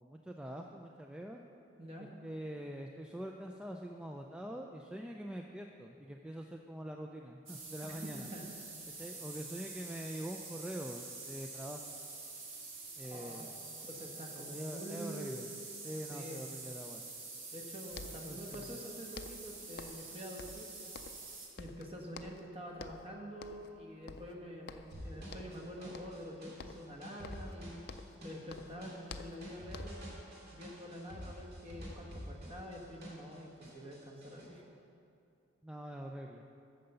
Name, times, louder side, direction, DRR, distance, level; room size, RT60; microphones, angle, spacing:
voice 1, 0.0-1.4 2.2-8.3 9.0-11.8 13.0-13.6 14.3-15.5 15.8-17.0 18.3-18.8 35.6-36.4, right 1 dB, 5° right, 2 dB, 0.3 m, -44 dB
voice 2, 1.8-2.1 7.8-8.5 13.0-13.5 13.9-15.4 16.1-16.4 17.5-20.7 21.6-27.8 28.2-30.0 30.5-34.6, equal, 30° right, 0 dB, 1.3 m, -47 dB
sound 1, 7.5-21.5, right 3 dB, 75° right, 1.7 m, -47 dB
sound 2, 17.6-17.7 17.9-18.9 19.1-20.1 20.4-21.3 21.6-22.5 22.8-23.1 23.4-23.8 24.1-25.0 25.3-25.6 25.9-26.3 26.6-28.2 28.5-30.1, left 4 dB, 55° left, 0.5 m, -50 dB
sound 3, 24.9-33.4 33.6-34.5, equal, 55° right, 2.4 m, -48 dB
9.1 x 6.6 x 6.9 m, 2.6 s
head